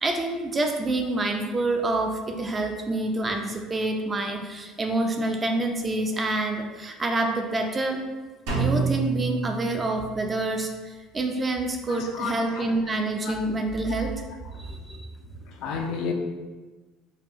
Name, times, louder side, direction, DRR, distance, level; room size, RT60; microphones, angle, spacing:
voice 1, 0.0-8.0 8.6-14.1 14.6-15.0, right 2 dB, 25° right, 4 dB, 0.4 m, -27 dB
Drum, 8.5-10.4, right 4 dB, 80° right, 1.3 m, -28 dB
voice 2, 11.9-12.7 13.2-13.4 13.9-14.1 14.5-14.7 15.5-16.1, left 5 dB, 70° left, 3 dB, 0.5 m, -33 dB
4.9 x 2.3 x 2.8 m, 1.3 s
cardioid pair, 120°, 0 cm